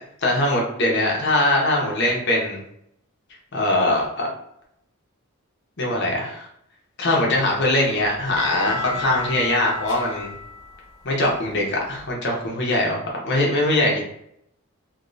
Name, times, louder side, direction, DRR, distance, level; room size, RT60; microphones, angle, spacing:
voice 1, 0.2-2.6 3.5-4.3 5.8-6.5 7.0-10.3 11.0-13.0 13.2-14.0, left 1 dB, 50° left, -2 dB, 0.9 m, -21 dB
sound 1, 7.3-12.1, left 3 dB, 15° left, 1.0 m, -36 dB
2.8 x 2.7 x 3.1 m, 0.73 s
head